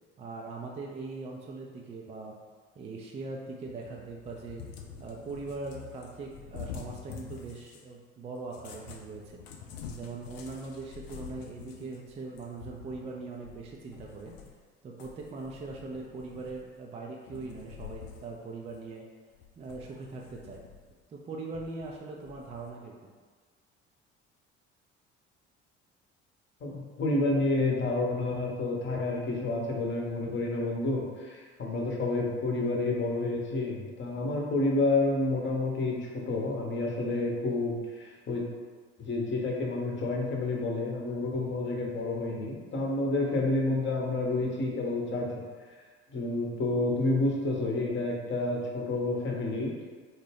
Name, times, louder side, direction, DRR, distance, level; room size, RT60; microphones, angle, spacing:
voice 1, 0.2-2.4 2.8-4.6 5.0-9.4 9.9-14.4 14.8-19.1 19.6-20.6 21.1-23.1, right 3 dB, 20° right, -1 dB, 0.4 m, -41 dB
Cat, 3.7-7.9 8.4-14.6 15.0-16.9 17.2-18.3 18.7-18.8 19.3-20.9 21.5-22.7, left 7 dB, 65° left, 0.5 m, -47 dB
voice 2, 26.6-38.4 39.0-45.4 46.1-49.7, left 2 dB, 30° left, -1 dB, 0.9 m, -29 dB
4.1 x 2.1 x 3.3 m, 1.5 s
figure-of-eight pair, 55°, 36 cm